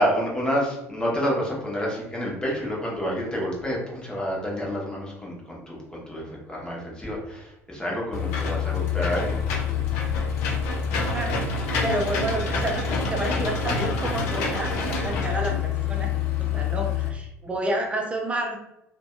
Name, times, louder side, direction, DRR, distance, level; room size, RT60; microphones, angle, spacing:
voice 1, 0.0-9.4, equal, 10° left, -3 dB, 0.8 m, -28 dB
Engine / Mechanisms, 8.1-17.1, left 5 dB, 65° left, 0.4 m, -26 dB
voice 2, 10.9-11.3 11.8-14.7 15.0-16.1 16.4-18.6, right 1 dB, 15° right, 1 dB, 0.5 m, -29 dB
2.6 x 2.1 x 2.2 m, 0.86 s
figure-of-eight pair, 60°, 8 cm